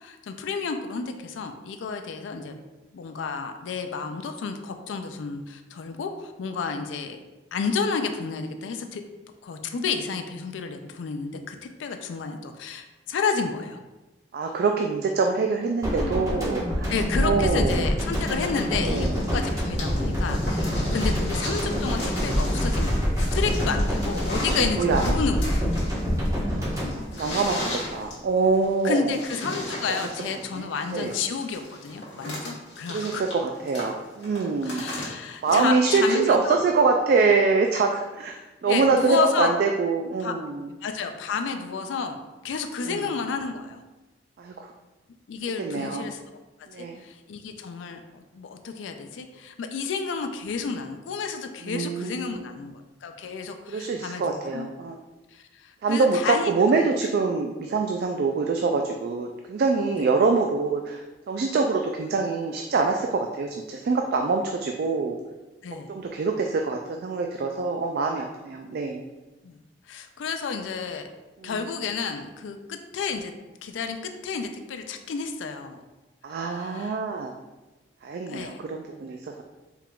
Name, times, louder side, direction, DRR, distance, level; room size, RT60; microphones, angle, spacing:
voice 1, 0.0-2.5 2.9-7.2 7.5-9.0 9.4-13.8 16.9-25.6 28.8-33.2 34.6-36.6 38.6-39.5 40.2-40.3 40.8-43.8 45.3-46.2 46.8-54.7 55.3-56.5 60.0-60.1 65.6-65.9 69.4-69.6 69.9-71.1 71.4-73.3 73.6-75.8 76.5-77.0 78.3-78.6, left 5 dB, 90° left, 6 dB, 0.4 m, -31 dB
voice 2, 14.3-17.9 18.8-19.2 19.8-19.9 21.2-21.3 24.5-25.2 26.4-26.8 27.2-29.2 29.9-30.1 30.5-31.1 32.9-34.9 35.4-40.7 42.8-43.1 44.4-44.7 45.6-46.1 46.7-47.0 51.6-52.4 53.7-55.0 55.8-61.0 61.3-65.2 65.9-69.0 71.4-71.6 76.2-77.3 78.0-79.4, right 4 dB, 55° right, 3 dB, 0.3 m, -25 dB
sound 1, 15.8-28.0 28.3-28.5, equal, 20° right, 1.3 m, -26 dB
sound 2, 18.2-36.3 37.4-37.5, left 1 dB, 65° left, 1.4 m, -37 dB
4.7 x 3.6 x 2.4 m, 1.1 s
head